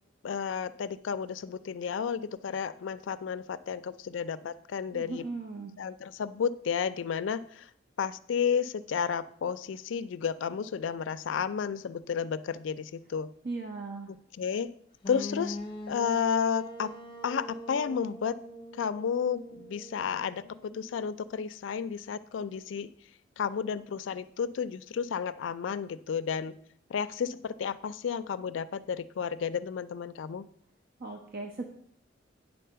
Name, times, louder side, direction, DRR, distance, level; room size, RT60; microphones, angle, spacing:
voice 1, 0.2-5.2 5.8-7.7 8.0-13.3 14.1-14.7 15.1-15.6 15.9-16.9 17.2-18.4 18.8-22.9 23.4-26.5 26.9-30.5, left 7 dB, 75° left, 14 dB, 0.4 m, -32 dB
voice 2, 4.9-5.7 13.4-14.1 31.0-31.6, right 3 dB, 55° right, 2 dB, 0.9 m, -37 dB
sound 1, 15.0-20.9, left 1 dB, 30° left, 0.9 m, -43 dB
9.3 x 4.1 x 6.7 m, 0.65 s
head